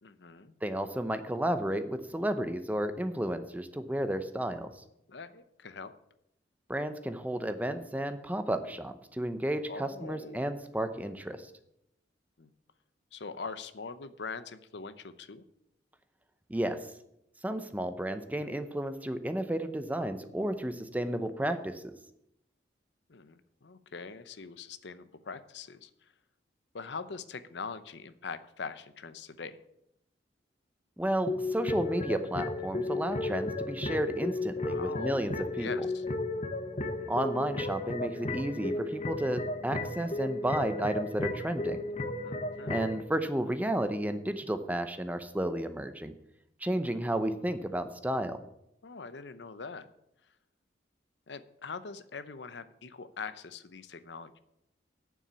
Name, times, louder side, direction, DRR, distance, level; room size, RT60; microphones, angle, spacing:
voice 1, 0.0-0.5 5.1-5.9 9.7-10.4 12.4-12.5 13.1-15.4 23.1-25.9 26.7-29.6 34.6-35.2 35.6-36.0 42.2-42.7 48.8-49.9 51.3-54.4, left 4 dB, 70° left, 13 dB, 0.8 m, -42 dB
voice 2, 0.6-4.7 6.7-11.5 16.5-16.9 17.4-22.0 31.0-35.9 37.1-41.8 42.7-46.1 46.6-48.4, right 1 dB, 10° right, 9 dB, 0.7 m, -32 dB
sound 1, 31.3-43.0, left 2 dB, 35° left, 1.0 m, -34 dB
9.0 x 7.2 x 8.3 m, 0.81 s
head